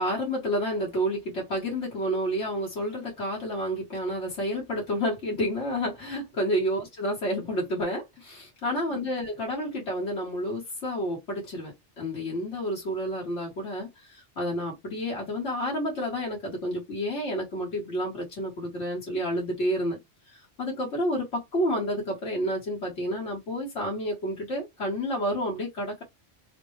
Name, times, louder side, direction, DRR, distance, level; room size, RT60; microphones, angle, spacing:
voice 1, 0.0-20.0 20.6-26.0, equal, 75° left, 1.7 m, -30 dB
4.0 x 2.2 x 3.1 m
omnidirectional pair, 1.2 m